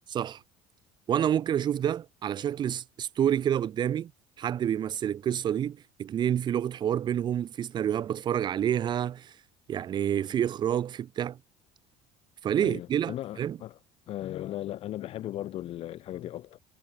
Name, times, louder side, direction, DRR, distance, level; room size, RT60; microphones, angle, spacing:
voice 1, 0.1-0.4 1.1-4.1 4.4-9.4 9.7-11.4 12.4-13.6, right 10 dB, 30° right, 2.9 m, -28 dB
voice 2, 12.6-13.8 14.1-16.6, left 13 dB, 45° left, 7.8 m, -37 dB
cardioid pair, 175°, 14 cm